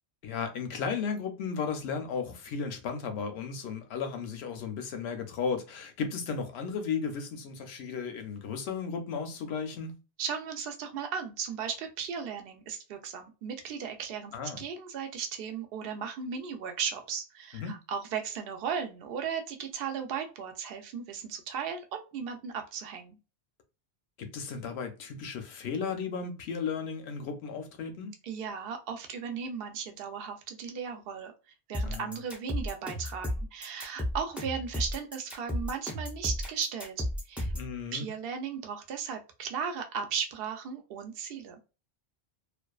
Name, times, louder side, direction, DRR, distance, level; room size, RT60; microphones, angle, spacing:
voice 1, 0.2-10.0 14.3-14.6 17.5-17.8 24.2-28.1 31.9-32.1 37.5-38.1, left 5 dB, 75° left, 0.8 m, -35 dB
voice 2, 10.2-23.2 28.2-31.3 31.7-37.5 37.9-41.6, right 7 dB, 65° right, 0.7 m, -36 dB
sound 1, 31.7-37.7, left 1 dB, ahead, 0.3 m, -33 dB
2.4 x 2.3 x 2.3 m
omnidirectional pair, 1.1 m